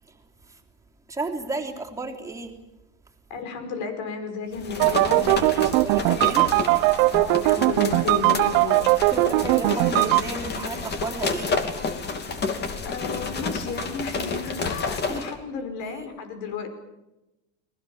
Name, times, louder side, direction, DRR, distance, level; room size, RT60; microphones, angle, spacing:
voice 1, 1.1-2.5 5.0-6.5 9.1-11.5 15.1-15.2, right 2 dB, 10° right, 0 dB, 3.5 m, -33 dB
voice 2, 3.3-5.5 7.2-8.9 12.8-16.7, left 5 dB, 65° left, 7 dB, 5.5 m, -33 dB
sound 1, 4.5-15.3, left 4 dB, 30° left, 2.9 m, -30 dB
sound 2, 4.8-10.2, right 20 dB, 60° right, 0.8 m, -20 dB
30.0 x 20.5 x 7.3 m, 1.0 s
supercardioid pair, 145°, 36 cm